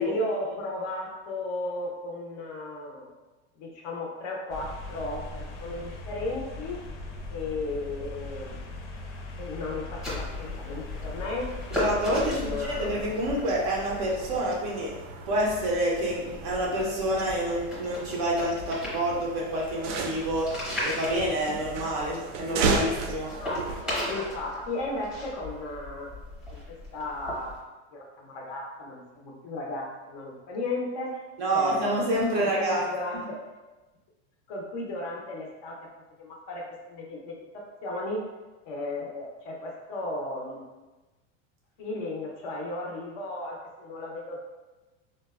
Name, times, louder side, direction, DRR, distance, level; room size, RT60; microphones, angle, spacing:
voice 1, 0.0-3.1 3.6-6.8 7.3-8.6 9.4-11.5 12.1-13.0 23.4-26.1 26.5-26.6 26.9-27.6 27.9-31.2 31.5-31.9 32.3-33.4 34.5-35.8 36.2-38.2 38.7-40.7 41.8-44.4, left 2 dB, 35° left, -2 dB, 0.4 m, -35 dB
sound 1, 4.5-12.6, left 2 dB, 80° left, 0.7 m, -39 dB
sound 2, 10.0-27.6, left 1 dB, 5° right, 0.7 m, -38 dB
voice 2, 11.8-14.9 15.3-20.6 20.8-23.4 31.4-32.9 33.1-33.2, right 1 dB, 35° right, -3 dB, 0.4 m, -28 dB
sound 3, 12.6-23.8, right 4 dB, 90° right, 0.5 m, -35 dB
3.8 x 2.1 x 2.2 m, 1.1 s
supercardioid pair, 165°, 35 cm